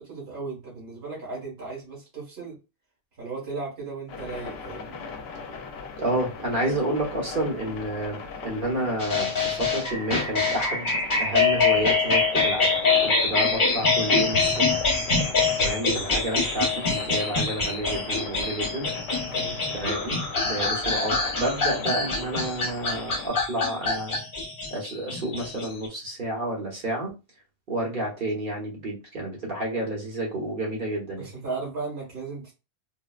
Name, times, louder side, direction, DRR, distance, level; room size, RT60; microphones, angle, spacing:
voice 1, 0.1-2.6 3.2-5.0 19.3-19.6 31.2-32.5, right 4 dB, 70° right, -4 dB, 1.7 m, -36 dB
sound 1, 4.1-23.3, left 5 dB, 70° left, 0.8 m, -39 dB
voice 2, 6.0-10.9 11.2-12.7 13.0-14.9 15.5-18.9 19.7-24.2 24.7-27.1 27.7-31.3, right 1 dB, 50° right, -2 dB, 1.2 m, -30 dB
sound 2, 9.0-25.9, left 4 dB, 55° left, 0.9 m, -25 dB
3.9 x 2.1 x 2.3 m, 0.29 s
omnidirectional pair, 1.1 m